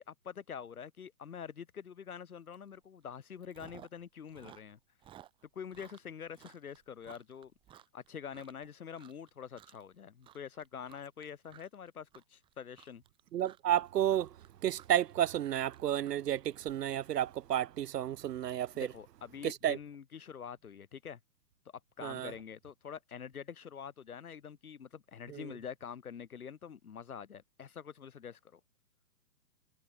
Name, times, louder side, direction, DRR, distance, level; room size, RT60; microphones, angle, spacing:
voice 1, 0.0-4.8 5.5-7.5 7.9-13.0 18.7-21.2 22.0-28.6, left 7 dB, 60° left, 2.7 m, -46 dB
Chewing mastication, 2.5-2.8 3.1-4.0 4.3-8.6 8.9-9.3 9.6-9.9 10.2-16.7, right 11 dB, 10° right, 6.9 m, -57 dB
voice 2, 13.3-14.4 14.6-18.9 19.4-19.8 22.0-22.3 25.3-25.5, right 11 dB, 75° right, 0.6 m, -31 dB
hypercardioid pair, 170°, 50 cm